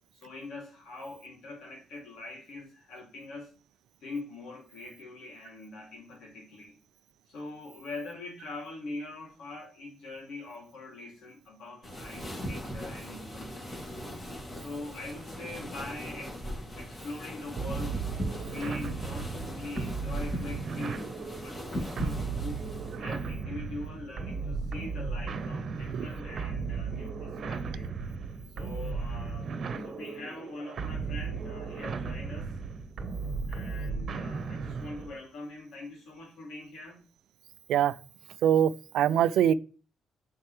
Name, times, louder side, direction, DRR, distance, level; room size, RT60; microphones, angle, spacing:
voice 1, 0.1-3.5 4.0-6.7 7.3-14.1 14.6-16.4 16.8-18.0 18.4-21.1 21.4-22.7 23.0-28.0 28.5-32.5 33.5-37.0, left 2 dB, 80° left, 2.8 m, -43 dB
sound 1, 11.8-23.0, equal, 40° left, 3.0 m, -39 dB
sound 2, 17.6-35.2, right 5 dB, 65° right, 1.0 m, -35 dB
voice 2, 38.4-39.5, right 10 dB, 85° right, 0.4 m, -23 dB
7.2 x 4.5 x 3.3 m
supercardioid pair, 60°, 0 cm